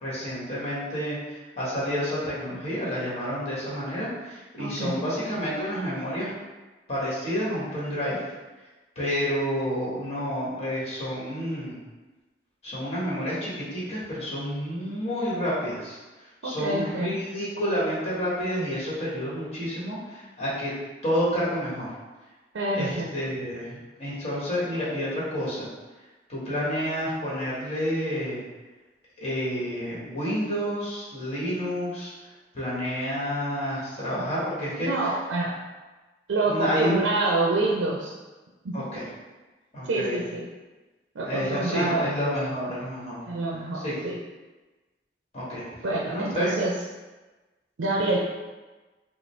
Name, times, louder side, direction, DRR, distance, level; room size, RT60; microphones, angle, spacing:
voice 1, 0.0-6.3 6.9-8.2 8.9-11.8 12.6-20.7 21.0-21.9 22.7-25.7 26.3-28.4 29.2-34.9 36.4-37.0 38.7-39.1 39.7-40.2 41.2-43.2 43.7-44.0 45.3-45.6 46.1-46.5, equal, 35° left, -7 dB, 1.3 m, -29 dB
voice 2, 4.6-5.0 16.4-17.2 22.5-23.1 34.8-35.6 36.3-38.1 38.6-38.9 39.8-40.5 41.2-42.1 43.3-44.2 45.8-46.7 47.8-48.2, right 2 dB, 90° right, -2 dB, 0.5 m, -27 dB
4.8 x 2.0 x 3.2 m, 1.2 s
head